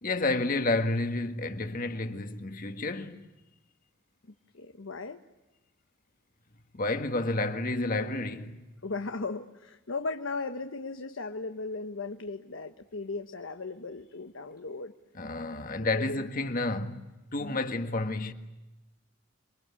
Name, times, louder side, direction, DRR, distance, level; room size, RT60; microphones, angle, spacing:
voice 1, 0.0-3.3 6.7-8.6 15.2-18.3, left 2 dB, 45° left, 1.7 m, -30 dB
voice 2, 4.5-5.2 8.8-14.9 15.8-16.3 17.4-17.6, left 3 dB, 80° left, 1.1 m, -37 dB
28.5 x 23.5 x 8.5 m
head